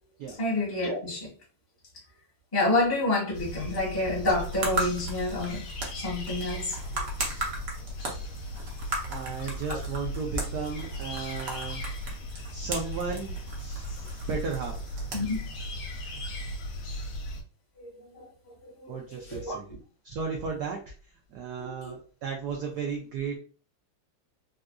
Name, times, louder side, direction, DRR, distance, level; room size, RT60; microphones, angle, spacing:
voice 1, 0.4-1.3 2.5-5.7 5.9-6.8 9.7-9.8 15.1-15.4 17.8-18.5 18.8-19.6 21.6-21.9, left 2 dB, 15° left, 0.7 m, -29 dB
sound 1, 3.3-17.4, equal, 80° left, 1.4 m, -37 dB
sound 2, 4.1-16.6, right 2 dB, 60° right, 0.9 m, -38 dB
voice 2, 9.1-11.8 12.5-13.8 14.3-14.8 18.9-19.7 20.0-23.4, right 5 dB, 90° right, 0.8 m, -34 dB
3.8 x 2.4 x 2.2 m
omnidirectional pair, 2.4 m